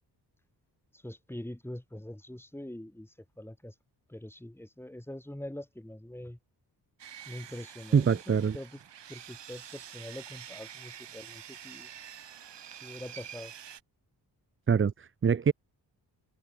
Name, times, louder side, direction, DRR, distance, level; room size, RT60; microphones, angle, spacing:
voice 1, 0.9-3.7 4.1-6.4 7.3-8.8 9.1-11.9 12.8-13.5, left 1 dB, 5° left, 4.7 m, -44 dB
Sawing, 7.0-13.8, right 9 dB, 90° right, 6.8 m, -47 dB
voice 2, 7.9-8.6 14.7-15.5, right 6 dB, 30° right, 0.6 m, -24 dB
cardioid pair, 75°, 41 cm